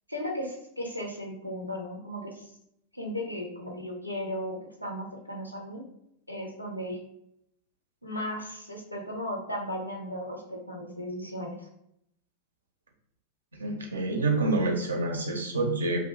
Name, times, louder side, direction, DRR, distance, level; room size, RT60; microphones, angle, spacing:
voice 1, 0.1-2.5 2.9-5.8 6.3-7.0 8.0-11.7, equal, 90° left, 0 dB, 0.5 m, -36 dB
voice 2, 13.6-16.0, right 2 dB, 70° right, 2 dB, 0.5 m, -27 dB
2.6 x 2.2 x 2.9 m, 0.76 s
figure-of-eight pair, 90°, 0 cm